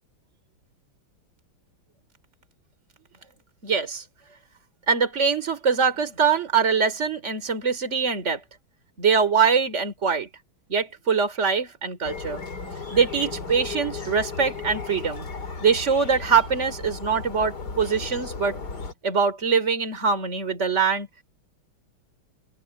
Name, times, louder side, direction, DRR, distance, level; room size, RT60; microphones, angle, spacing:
voice 1, 3.6-4.0 4.9-8.4 9.0-10.3 10.7-12.4 12.9-15.3 15.6-18.6 19.0-21.1, right 6 dB, 30° right, 3.5 m, -23 dB
sound 1, 12.0-18.9, left 4 dB, 50° left, 3.7 m, -35 dB
open air
omnidirectional pair, 2.4 m